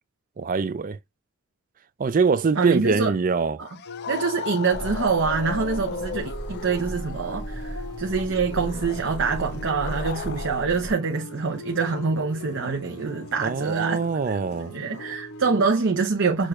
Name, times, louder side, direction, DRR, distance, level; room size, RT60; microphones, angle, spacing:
voice 1, 0.4-1.0 2.0-3.6 13.4-14.7, right 5 dB, 40° right, 0.4 m, -23 dB
voice 2, 2.6-3.1 3.6-3.7 4.1-14.0 14.3-14.4 14.7-16.5, right 5 dB, 55° right, 0.8 m, -25 dB
sound 1, 3.6-11.0 11.3-15.2, left 5 dB, 50° left, 0.4 m, -38 dB
sound 2, 3.9-15.7, left 2 dB, 70° left, 0.8 m, -41 dB
sound 3, 4.7-10.9, right 1 dB, 20° right, 0.9 m, -36 dB
6.4 x 2.5 x 3.1 m
head